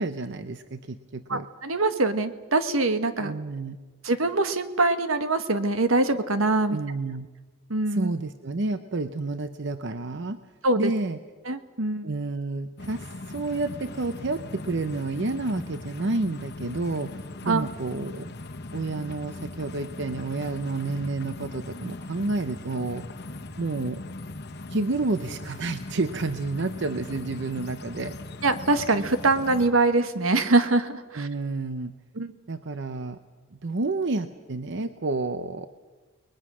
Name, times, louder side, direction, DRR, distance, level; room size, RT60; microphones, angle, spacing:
voice 1, 0.0-1.5 3.2-3.8 6.7-7.3 7.9-10.4 10.8-11.2 12.0-18.3 18.7-23.0 23.6-24.0 24.7-28.2 31.1-31.9 32.5-33.2 33.5-35.7, right 3 dB, 60° right, 10 dB, 0.8 m, -30 dB
voice 2, 1.3-3.3 4.0-6.8 7.7-8.1 10.6-10.9 11.5-12.1 17.5-17.7 28.4-31.3 32.2-32.3, right 2 dB, 80° right, 10 dB, 1.4 m, -23 dB
sound 1, 12.8-29.7, left 2 dB, 55° left, 1.1 m, -39 dB
30.0 x 21.0 x 6.2 m, 1.3 s
head